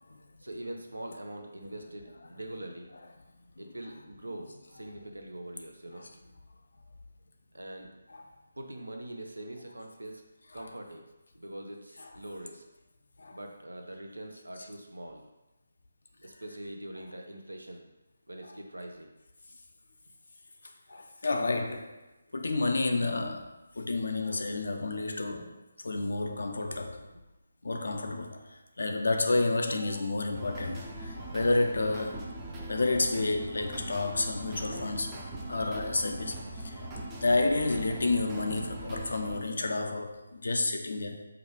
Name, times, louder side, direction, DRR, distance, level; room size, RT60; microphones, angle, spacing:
voice 1, 0.4-2.9 3.6-6.1 7.5-7.9 8.6-10.2 10.5-11.1 11.3-12.6 13.3-15.2 16.2-17.8 18.3-19.1 38.8-39.0, right 1 dB, 85° right, 3 dB, 0.5 m, -43 dB
voice 2, 20.9-21.9 22.3-27.0 27.6-32.2 32.7-35.1 35.5-41.2, left 2 dB, 65° left, 4 dB, 0.4 m, -30 dB
sound 1, 29.7-39.4, right 1 dB, 15° right, 0.5 m, -41 dB
4.8 x 2.3 x 3.2 m, 1.0 s
figure-of-eight pair, 150°, 0 cm